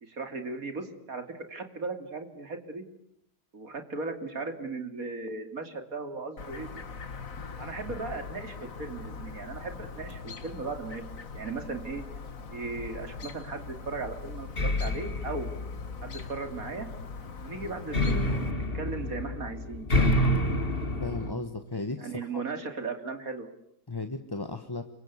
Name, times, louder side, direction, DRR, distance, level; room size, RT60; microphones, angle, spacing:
voice 1, 0.0-2.8 3.5-6.8 7.6-12.0 12.5-15.5 16.0-16.9 17.4-18.4 18.7-20.1 22.0-23.5, right 3 dB, 60° right, 7 dB, 3.2 m, -37 dB
Chirp tweet, 6.4-18.5, left 4 dB, 55° left, 2.1 m, -42 dB
sound 1, 14.6-16.5 17.9-21.3, left 1 dB, 35° left, 2.5 m, -28 dB
voice 2, 21.0-22.5 23.9-24.8, left 2 dB, 15° left, 8 dB, 1.2 m, -35 dB
28.0 x 24.5 x 8.2 m, 0.74 s
omnidirectional pair, 1.7 m